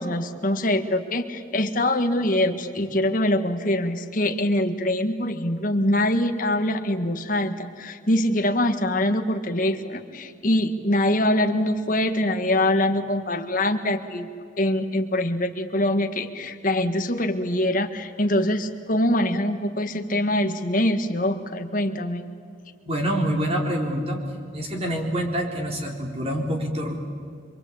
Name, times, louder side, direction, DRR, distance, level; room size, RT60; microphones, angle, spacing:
voice 1, 0.0-14.3 14.6-22.3, left 1 dB, 45° left, 6 dB, 1.7 m, -24 dB
voice 2, 22.9-24.2 24.5-27.0, equal, 30° right, 1 dB, 4.1 m, -26 dB
26.5 x 24.0 x 8.7 m, 2.3 s
head